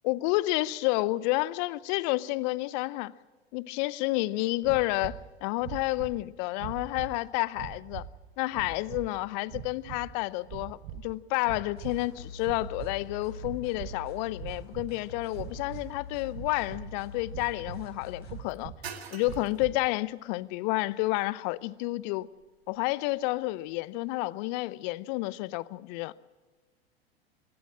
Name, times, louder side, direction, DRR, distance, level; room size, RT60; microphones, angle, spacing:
voice 1, 0.0-3.1 3.5-8.1 8.4-18.7 19.1-22.3 22.7-26.1, left 19 dB, 45° left, 0.7 m, -30 dB
sound 1, 4.6-5.2 5.6-6.2 6.6-7.2 7.5-8.1 8.5-9.0 9.5-10.1 10.4-11.1 11.4-12.1 12.4-13.0 13.4-14.0 14.3-14.9 15.3-15.9 16.3-16.9 17.3-17.9 18.2-18.8 19.2-19.8, right 10 dB, 50° right, 1.5 m, -42 dB
sound 2, 11.8-18.4, left 2 dB, 85° left, 4.9 m, -45 dB
sound 3, 14.0-24.1, right 7 dB, 75° right, 1.8 m, -52 dB
22.5 x 16.5 x 7.5 m
figure-of-eight pair, 90°, 31 cm